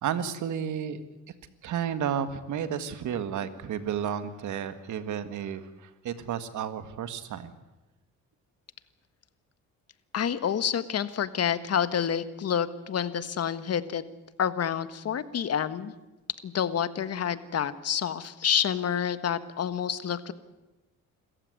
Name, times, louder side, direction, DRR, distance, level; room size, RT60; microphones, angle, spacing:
voice 1, 0.0-1.0 1.6-7.5, right 8 dB, 75° right, 11 dB, 1.9 m, -32 dB
voice 2, 10.1-14.0 14.4-15.9 16.4-20.3, left 8 dB, 55° left, 13 dB, 1.5 m, -28 dB
26.5 x 14.5 x 9.7 m, 1.0 s
cardioid pair, 90°, 30 cm